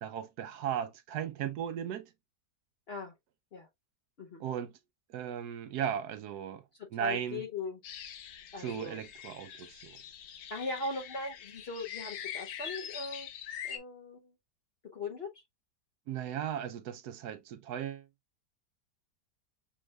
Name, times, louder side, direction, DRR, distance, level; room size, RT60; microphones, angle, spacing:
voice 1, 0.0-2.1 4.4-4.7 5.1-6.6 6.9-7.4 8.6-10.0 16.1-18.1, right 9 dB, 75° right, 1.1 m, -36 dB
voice 2, 6.8-7.8 8.5-9.0 10.5-13.3 13.6-14.3 14.9-15.4, left 3 dB, 55° left, 0.7 m, -39 dB
sound 1, 7.8-13.8, left 9 dB, 80° left, 1.3 m, -44 dB
6.1 x 3.2 x 2.3 m
omnidirectional pair, 1.8 m